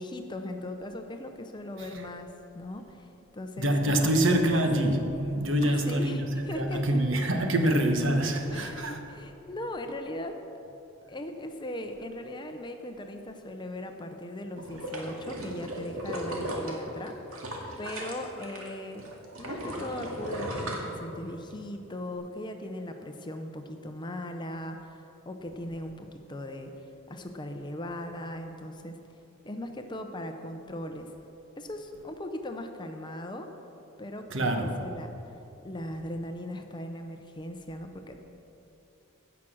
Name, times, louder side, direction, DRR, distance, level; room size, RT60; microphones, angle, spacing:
voice 1, 0.0-4.7 5.6-7.0 8.5-10.4 11.1-17.5 17.8-19.1 19.4-29.0 29.4-31.1 31.6-33.5 34.0-35.1 35.6-38.2, left 1 dB, 20° left, 6 dB, 0.6 m, -39 dB
voice 2, 3.6-6.3 6.5-9.0 34.3-34.7, right 1 dB, 65° right, 3 dB, 1.2 m, -25 dB
sound 1, 14.6-18.7 19.0-21.5 21.9-22.0, right 1 dB, 85° right, 2.0 m, -36 dB
16.0 x 5.9 x 6.2 m, 3.0 s
head